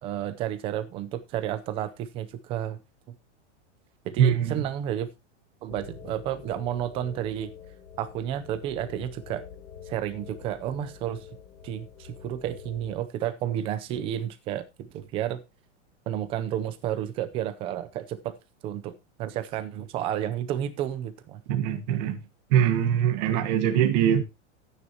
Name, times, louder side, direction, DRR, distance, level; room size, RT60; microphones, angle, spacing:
voice 1, 0.0-2.8 4.0-5.1 5.6-7.5 8.0-9.4 9.9-11.3 11.6-15.4 16.1-18.3 18.6-18.9 19.2-21.4, right 11 dB, 15° right, 0.6 m, -31 dB
voice 2, 4.2-4.6 21.5-22.2 22.5-24.2, right 9 dB, 35° right, 1.4 m, -23 dB
sound 1, 5.7-13.0, left 8 dB, 90° left, 4.2 m, -46 dB
13.5 x 9.7 x 2.9 m
supercardioid pair, 175°, 36 cm